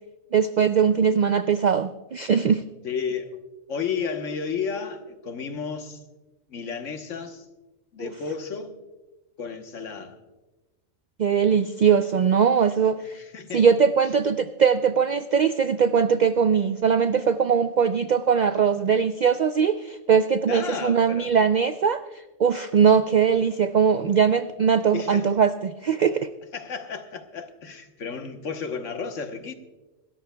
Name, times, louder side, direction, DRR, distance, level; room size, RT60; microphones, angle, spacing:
voice 1, 0.3-2.6 8.0-8.1 11.2-13.2 13.5-22.0 22.4-26.3, right 6 dB, 80° right, 0.4 m, -21 dB
voice 2, 2.8-3.4 3.7-6.0 6.5-7.4 7.9-8.7 9.4-10.2 12.8-13.7 20.5-21.4 24.9-25.3 26.5-29.5, left 6 dB, 75° left, 1.4 m, -32 dB
27.0 x 13.0 x 2.2 m
omnidirectional pair, 1.3 m